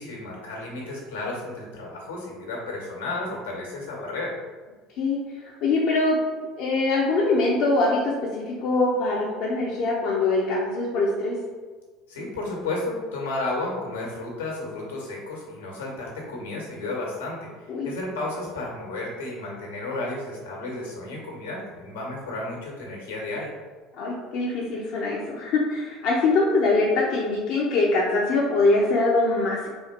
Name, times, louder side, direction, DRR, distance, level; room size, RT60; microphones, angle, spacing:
voice 1, 0.0-4.3 12.1-23.5, left 2 dB, 85° left, -2 dB, 1.5 m, -33 dB
voice 2, 5.4-6.2 6.6-11.4 17.7-17.9 24.0-29.7, left 2 dB, 60° left, -4 dB, 0.8 m, -23 dB
4.3 x 2.8 x 4.3 m, 1.4 s
hypercardioid pair, 70°, 0 cm